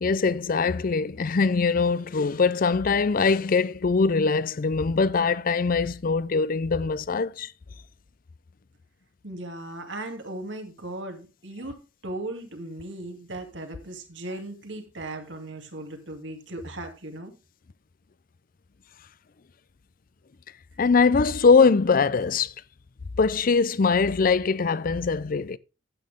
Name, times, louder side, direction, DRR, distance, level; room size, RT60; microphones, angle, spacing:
voice 1, 0.0-7.5 20.8-22.5 23.2-25.6, left 4 dB, 50° left, 0.5 m, -22 dB
voice 2, 9.2-17.3, right 1 dB, 75° right, 2.5 m, -37 dB
11.5 x 8.8 x 3.5 m
head